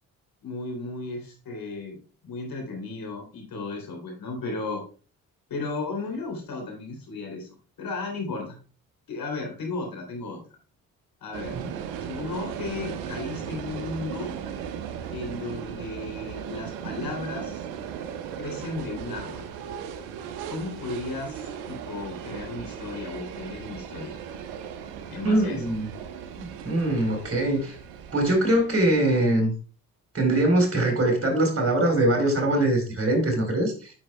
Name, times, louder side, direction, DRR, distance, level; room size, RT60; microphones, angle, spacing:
voice 1, 0.4-4.8 5.5-7.5 7.8-8.6 9.1-10.4 11.2-11.6 12.0-14.4 15.1-17.6 18.4-19.5 20.5-24.2 25.1-25.7, left 3 dB, 55° left, 3.2 m, -34 dB
sound 1, 11.3-29.1, right 8 dB, 80° right, 0.9 m, -37 dB
voice 2, 25.2-25.9 26.4-27.8 28.1-29.5 30.1-33.9, right 1 dB, 35° right, 4.0 m, -22 dB
9.2 x 7.1 x 2.2 m
hypercardioid pair, 45°, 41 cm